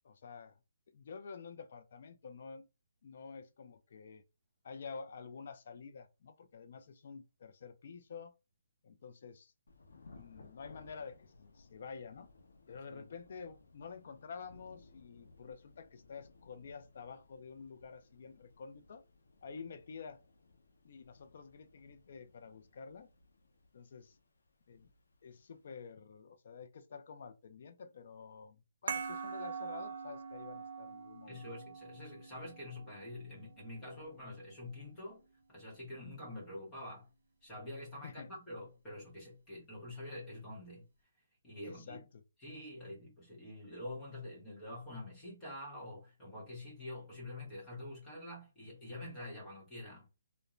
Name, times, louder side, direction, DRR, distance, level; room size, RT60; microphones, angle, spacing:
voice 1, 0.0-0.6 0.9-2.7 3.0-4.2 4.6-8.3 8.8-9.5 9.9-12.3 12.7-19.0 19.4-20.2 20.8-23.1 23.7-24.2 24.7-24.9 25.2-31.4 38.0-38.3 41.6-42.2, left 5 dB, 35° left, 0.4 m, -49 dB
Thunder / Rain, 9.7-25.9, left 3 dB, 80° left, 0.7 m, -62 dB
sound 1, 28.9-34.0, right 5 dB, 60° right, 0.5 m, -44 dB
voice 2, 31.3-37.1 37.4-40.8 41.4-42.0 42.4-50.1, left 1 dB, 10° left, 0.9 m, -47 dB
2.4 x 2.1 x 3.0 m
hypercardioid pair, 180°, 0 cm